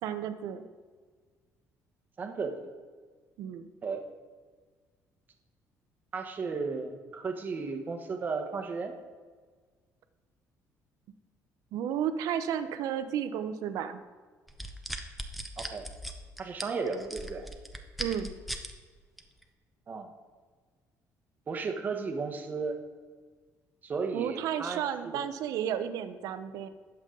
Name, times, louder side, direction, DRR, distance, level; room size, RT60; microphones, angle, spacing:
voice 1, 0.0-0.6 3.4-3.7 11.7-14.0 18.0-18.3 24.1-26.7, right 9 dB, 75° right, 10 dB, 0.8 m, -32 dB
voice 2, 2.2-2.5 3.8-4.0 6.1-8.9 15.6-15.8 16.4-17.5 19.9-20.1 21.5-22.8 23.8-25.2, right 4 dB, 30° right, 5 dB, 1.1 m, -34 dB
sound 1, 14.5-18.7 19.2-19.4, equal, ahead, 0.8 m, -38 dB
19.5 x 7.1 x 3.9 m, 1.5 s
cardioid pair, 160°, 6 cm